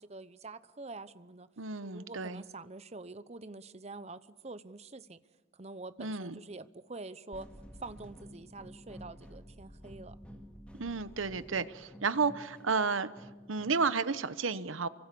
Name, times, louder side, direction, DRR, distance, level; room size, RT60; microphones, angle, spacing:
voice 1, 0.0-1.5 1.8-5.2 5.5-7.5 7.8-10.2, right 3 dB, 35° right, 14 dB, 0.8 m, -46 dB
voice 2, 1.6-2.4 6.0-6.4 10.8-13.1 13.5-14.9, right 4 dB, 90° right, 14 dB, 1.0 m, -32 dB
sound 1, 7.3-14.0, equal, 5° left, 2.2 m, -51 dB
28.5 x 24.0 x 7.0 m, 1.2 s
head